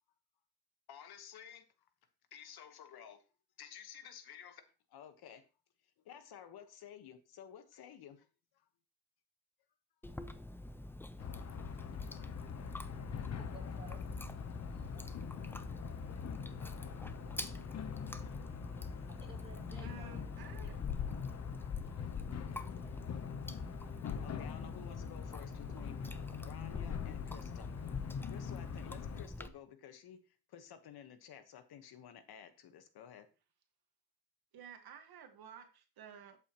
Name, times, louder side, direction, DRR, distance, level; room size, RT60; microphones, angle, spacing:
voice 1, 0.9-1.9 2.3-3.3 3.6-5.5 5.8-8.3 8.5-8.7 11.2-11.3 18.9-19.1 24.2-26.0 26.3-27.7 28.2-33.3, left 9 dB, 70° left, 9 dB, 1.3 m, -53 dB
Chewing mastication, 10.0-29.5, left 1 dB, 5° left, 0.6 m, -48 dB
sound 1, 11.2-29.3, left 7 dB, 40° left, 0.9 m, -42 dB
voice 2, 13.5-14.0 14.9-15.1 19.2-20.6, right 4 dB, 10° right, -3 dB, 5.4 m, -56 dB
voice 3, 19.8-20.8 21.2-21.4 34.5-36.4, right 7 dB, 70° right, 6 dB, 1.6 m, -53 dB
11.5 x 8.3 x 3.0 m, 0.32 s
cardioid pair, 120°, 39 cm